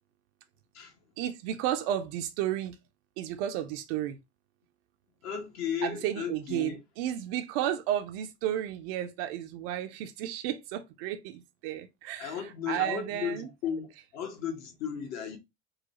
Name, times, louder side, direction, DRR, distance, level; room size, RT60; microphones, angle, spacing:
voice 1, 1.2-2.8 3.2-4.2 5.8-13.5, right 11 dB, 55° right, 0.5 m, -33 dB
voice 2, 5.2-6.8 12.2-13.9 14.1-15.4, left 8 dB, 50° left, 1.1 m, -35 dB
3.9 x 2.3 x 2.9 m
hypercardioid pair, 75°, 34 cm